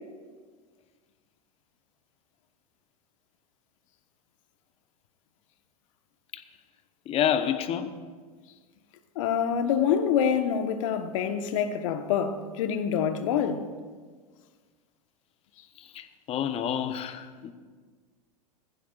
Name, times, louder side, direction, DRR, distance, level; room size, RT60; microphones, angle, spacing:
voice 1, 7.1-7.9 15.9-17.5, left 9 dB, 30° left, 0.9 m, -28 dB
voice 2, 9.1-13.7, left 8 dB, 55° left, 1.2 m, -26 dB
19.5 x 15.5 x 2.5 m
figure-of-eight pair, 90°, 19 cm